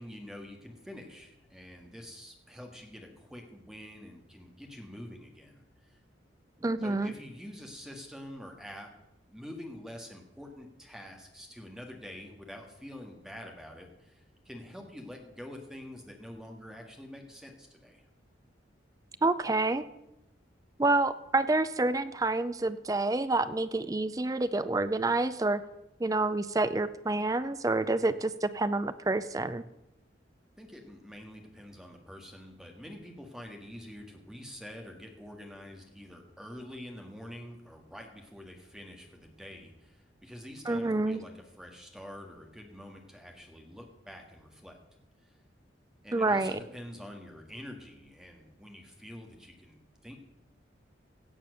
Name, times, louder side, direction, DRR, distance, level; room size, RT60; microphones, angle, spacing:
voice 1, 0.0-6.0 6.8-8.9 9.3-18.0 30.6-44.8 45.2-45.3 46.0-50.2, left 1 dB, 5° right, 2 dB, 1.8 m, -46 dB
voice 2, 6.6-7.1 19.2-19.8 20.8-25.6 26.0-29.6 40.7-41.2 46.1-46.5, right 2 dB, 20° right, 13 dB, 0.4 m, -28 dB
16.5 x 7.4 x 6.4 m, 0.92 s
head